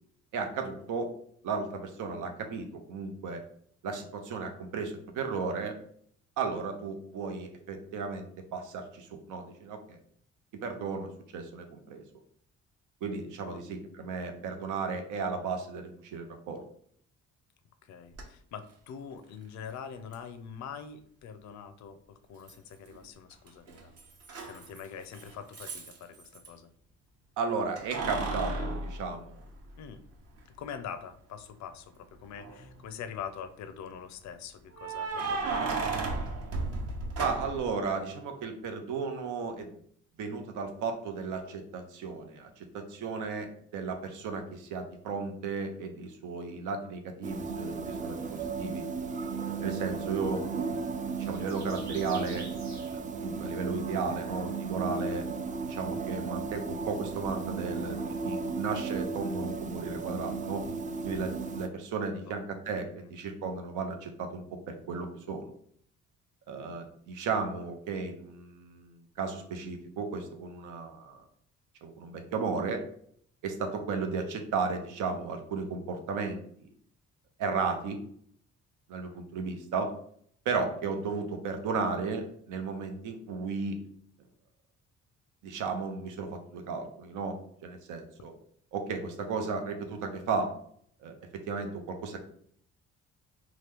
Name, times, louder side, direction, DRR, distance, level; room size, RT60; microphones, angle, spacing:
voice 1, 0.3-1.1 1.4-3.4 3.8-5.7 6.4-10.0 10.5-12.0 13.0-16.6 27.4-29.4 37.2-39.7 40.2-43.5 43.7-48.2 48.6-48.8 49.6-50.4 51.2-52.5 52.9-55.2 55.7-60.6 61.0-65.4 66.5-71.2 71.8-72.8 73.4-76.7 77.4-78.0 78.9-79.9 80.5-83.8 85.4-88.3 88.7-90.5 91.0-92.2, right 4 dB, 90° right, 5 dB, 0.6 m, -34 dB
voice 2, 17.8-23.9 24.4-26.7 29.7-30.0 30.6-36.2 62.3-62.4 63.0-63.1, left 7 dB, 65° left, 10 dB, 0.5 m, -44 dB
Keys jangling, 18.1-18.2 20.1-20.2 22.5-23.0 23.3-26.5 27.8-29.9 30.4-30.5 32.2-32.8 34.7-37.7, right 3 dB, 55° right, 0.8 m, -34 dB
sound 1, 47.2-61.7, right 4 dB, 25° right, 0.3 m, -35 dB
sound 2, 48.1-54.4, right 2 dB, 70° right, 1.1 m, -52 dB
2.9 x 2.3 x 3.3 m, 0.63 s
cardioid pair, 90°, 30 cm